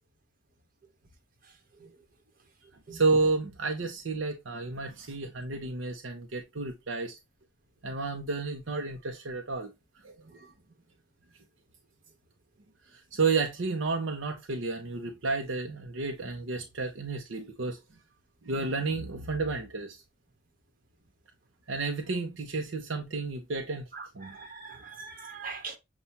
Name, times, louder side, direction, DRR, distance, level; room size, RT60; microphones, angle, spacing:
voice 1, 2.9-7.2 7.8-9.7 12.9-17.8 18.4-20.0 21.7-23.9 24.1-24.4, right 3 dB, 70° right, 0.7 m, -31 dB
voice 2, 10.0-10.5 23.9-25.8, right 4 dB, 45° right, 1.2 m, -43 dB
6.9 x 2.3 x 2.8 m
head